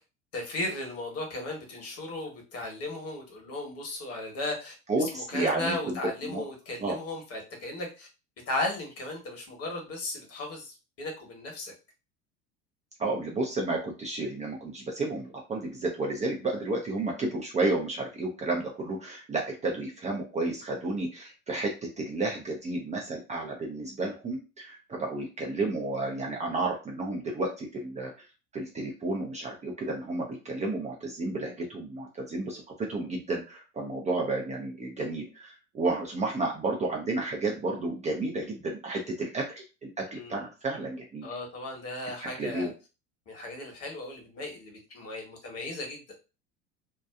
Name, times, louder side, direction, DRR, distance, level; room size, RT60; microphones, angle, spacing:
voice 1, 0.3-4.7 5.1-8.1 8.5-11.7 40.1-40.5 41.2-42.7 43.3-46.0, left 2 dB, 40° left, 0 dB, 1.3 m, -36 dB
voice 2, 4.9-6.0 6.2-6.4 6.8-7.0 13.0-28.3 28.5-41.3 42.2-42.7, right 2 dB, 20° right, 0 dB, 0.5 m, -32 dB
2.8 x 2.2 x 2.3 m, 0.31 s
figure-of-eight pair, 75°, 38 cm